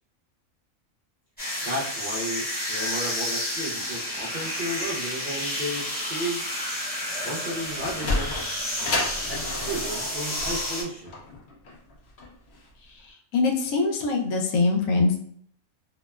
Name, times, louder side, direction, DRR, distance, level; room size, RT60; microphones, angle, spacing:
sound 1, 1.4-10.8, left 1 dB, 10° left, 0.8 m, -31 dB
voice 1, 1.6-6.5 7.1-8.4 9.3-11.1, equal, 65° right, -6 dB, 0.5 m, -33 dB
Sliding door, 7.5-12.7, left 2 dB, 60° left, 0.7 m, -31 dB
voice 2, 13.3-15.2, left 3 dB, 90° left, 1 dB, 1.1 m, -23 dB
2.8 x 2.0 x 2.2 m, 0.62 s
omnidirectional pair, 1.5 m